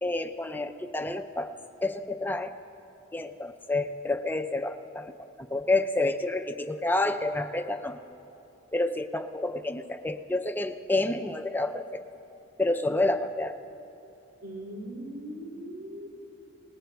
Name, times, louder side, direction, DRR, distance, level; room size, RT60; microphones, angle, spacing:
voice 1, 0.0-1.5 1.8-2.6 3.1-8.0 8.7-12.0 12.6-13.6, left 2 dB, 10° left, 7 dB, 0.4 m, -29 dB
voice 2, 14.4-16.1, right 1 dB, 55° right, -3 dB, 2.8 m, -39 dB
27.5 x 19.5 x 2.3 m, 2.9 s
head